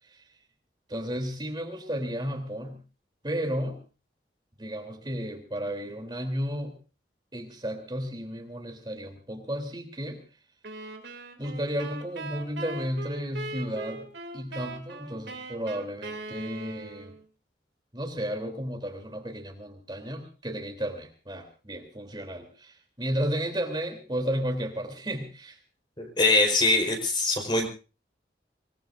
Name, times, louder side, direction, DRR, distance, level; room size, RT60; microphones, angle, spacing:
voice 1, 0.9-2.8 3.2-3.8 4.6-6.7 7.3-10.2 11.4-14.1 14.3-17.1 17.9-25.6, equal, 25° right, 3 dB, 3.3 m, -33 dB
sound 1, 10.6-17.2, right 2 dB, 80° right, 2.9 m, -40 dB
voice 2, 26.0-27.7, left 2 dB, 25° left, 4 dB, 4.4 m, -23 dB
26.5 x 19.5 x 2.6 m, 0.35 s
head